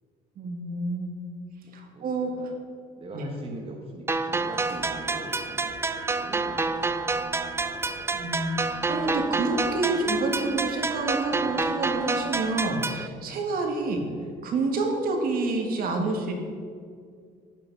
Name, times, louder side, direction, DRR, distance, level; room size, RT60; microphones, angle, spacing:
voice 1, 0.4-1.1 1.7-2.3 3.1-3.3 8.1-14.0 14.4-16.3, right 3 dB, 60° right, 2 dB, 1.7 m, -28 dB
voice 2, 1.6-2.5 3.0-6.7 14.0-14.4, right 3 dB, 35° right, 0 dB, 1.1 m, -43 dB
sound 1, 4.1-13.1, right 3 dB, 15° right, 0.3 m, -28 dB
sound 2, 4.3-13.2, left 3 dB, 70° left, 1.5 m, -48 dB
11.0 x 7.0 x 4.7 m, 2.2 s
cardioid pair, 110°, 17 cm